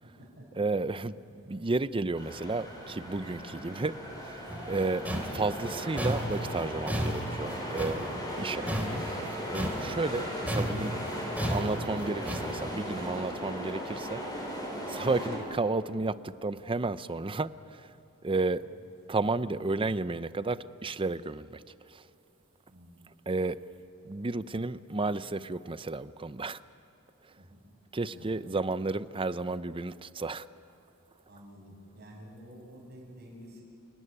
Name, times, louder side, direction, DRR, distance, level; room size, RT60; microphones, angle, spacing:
voice 1, 0.0-0.6 1.3-1.5 15.0-15.2 22.7-23.1 27.4-27.6 28.1-28.6 29.1-29.2 31.3-33.6, equal, 45° right, -8 dB, 6.2 m, -51 dB
voice 2, 0.6-5.1 5.3-8.0 8.4-8.7 9.0-9.2 9.5-10.9 11.5-14.2 14.9-17.9 18.2-18.6 19.1-22.0 23.3-23.6 24.0-26.6 27.9-30.5, right 3 dB, 25° right, 14 dB, 0.6 m, -32 dB
sound 1, 2.2-15.4, equal, 20° left, 6.4 m, -37 dB
sound 2, 3.9-12.8, right 2 dB, 85° right, 6.0 m, -51 dB
sound 3, 4.5-10.2 10.5-12.7, equal, 5° right, 2.9 m, -33 dB
29.0 x 18.0 x 10.0 m, 2.7 s
head